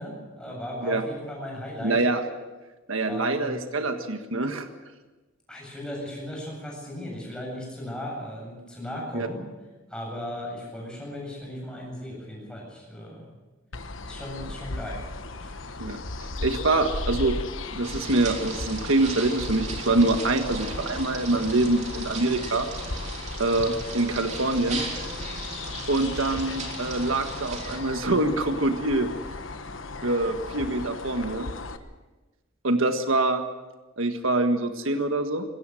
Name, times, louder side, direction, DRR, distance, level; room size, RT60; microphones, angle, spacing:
voice 1, 0.0-2.0 3.1-3.6 5.5-9.4 9.9-13.3 14.0-15.0 15.4-15.8, left 1 dB, 5° left, -2 dB, 8.0 m, -37 dB
voice 2, 1.8-2.2 2.9-4.7 9.1-9.3 15.8-16.0 16.4-17.4 17.7-22.7 23.4-24.8 25.9-29.1 30.0-31.5 32.6-33.4 34.0-35.4, right 2 dB, 80° right, 7 dB, 1.6 m, -25 dB
sound 1, 13.7-31.8, left 2 dB, 70° left, 1.2 m, -36 dB
sound 2, 17.8-27.8, right 3 dB, 35° right, 3.5 m, -37 dB
21.0 x 17.0 x 7.8 m, 1.2 s
head